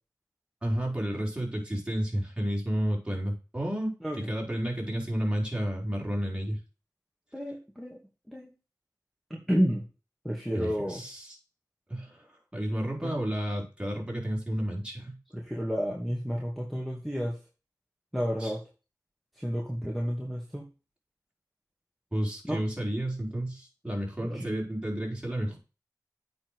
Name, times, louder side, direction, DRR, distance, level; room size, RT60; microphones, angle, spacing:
voice 1, 0.6-6.6 10.5-11.4 11.9-15.2 18.4-18.5 22.1-25.6, equal, 15° right, -2 dB, 5.0 m, -31 dB
voice 2, 7.3-8.0 8.3-8.5 9.3-9.9 10.2-11.0 13.0-13.1 15.3-17.4 18.1-18.6 19.4-20.7 22.5-22.6 24.2-24.5, equal, ahead, -1 dB, 2.6 m, -31 dB
8.6 x 6.0 x 4.9 m, 0.33 s
cardioid pair, 40°, 7 cm